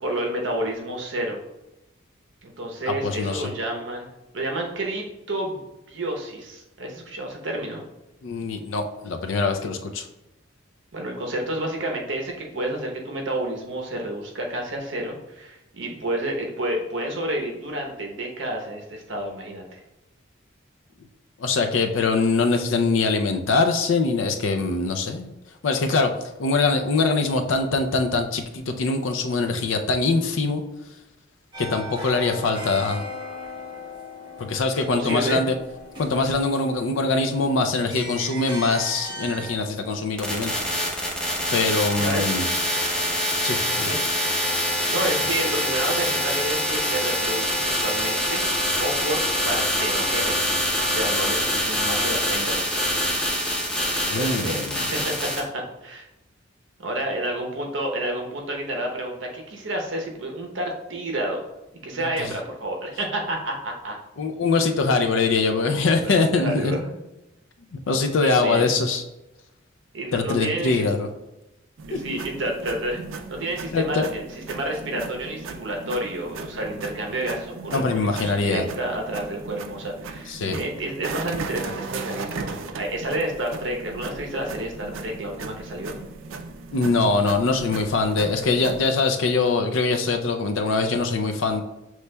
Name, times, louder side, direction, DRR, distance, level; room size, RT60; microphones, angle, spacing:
voice 1, 0.0-1.4 2.4-7.8 10.9-19.8 34.9-35.4 41.9-42.3 43.9-44.0 44.9-52.8 54.1-56.1 56.8-61.4 61.8-64.0 64.6-64.8 66.0-67.0 68.2-68.7 69.9-70.9 71.9-86.0, right 1 dB, 70° right, 1 dB, 0.8 m, -30 dB
voice 2, 2.9-3.5 8.2-10.1 21.4-25.3 25.6-26.1 26.4-30.6 31.6-33.0 34.4-35.5 36.0-40.5 40.8-41.1 41.5-42.5 43.4-43.9 54.1-54.9 62.0-62.3 64.2-66.8 67.7-69.0 70.1-71.1 71.9-72.2 73.7-74.1 77.7-78.6 80.3-80.6 86.7-91.6, left 3 dB, 80° left, 5 dB, 0.5 m, -23 dB
sound 1, 31.5-39.6, left 1 dB, 25° right, 1.1 m, -38 dB
sound 2, 40.2-55.4, equal, 5° left, 0.6 m, -25 dB
sound 3, 71.8-88.8, right 4 dB, 85° right, 0.4 m, -37 dB
6.7 x 3.1 x 2.2 m, 0.95 s
head